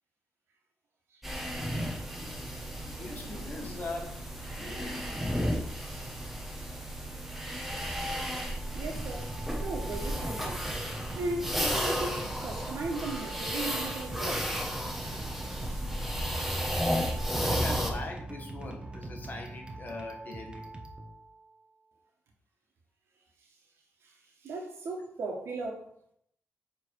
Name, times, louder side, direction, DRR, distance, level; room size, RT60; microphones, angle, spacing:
sound 1, 1.2-17.9, equal, 5° right, 1.3 m, -33 dB
voice 1, 2.8-4.2 4.6-5.0 17.4-20.7, left 2 dB, 45° left, 1.6 m, -40 dB
voice 2, 5.4-6.2 8.0-8.1 8.7-9.3 9.6-10.6 11.1-14.5 15.6-15.8 24.0-24.2 24.4-25.9, right 2 dB, 75° right, 1.8 m, -38 dB
sound 2, 8.5-21.6, right 1 dB, 25° right, 1.1 m, -43 dB
7.5 x 3.9 x 4.8 m
cardioid pair, 85°, 4 cm